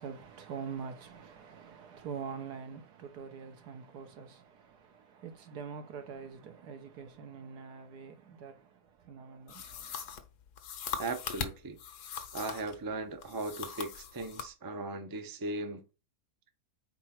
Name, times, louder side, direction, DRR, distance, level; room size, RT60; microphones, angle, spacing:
voice 1, 0.0-10.1, right 6 dB, 85° right, 1.6 m, -45 dB
sound 1, 9.5-12.8 13.2-14.5, left 7 dB, 80° left, 1.4 m, -40 dB
voice 2, 11.0-11.8 12.3-15.8, right 2 dB, 30° right, 0.4 m, -38 dB
4.5 x 4.4 x 5.8 m
omnidirectional pair, 1.7 m